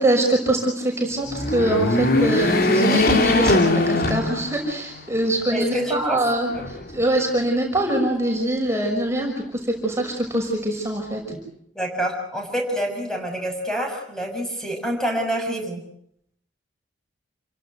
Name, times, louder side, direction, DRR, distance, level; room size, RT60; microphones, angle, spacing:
voice 1, 0.0-11.4, right 1 dB, 15° right, 0 dB, 5.9 m, -23 dB
sound 1, 1.2-4.8 5.3-5.4 6.5-7.3, left 2 dB, 55° left, 3.1 m, -20 dB
voice 2, 5.5-6.2 11.7-15.8, equal, 5° left, 2 dB, 6.7 m, -27 dB
28.5 x 17.5 x 8.0 m, 0.70 s
head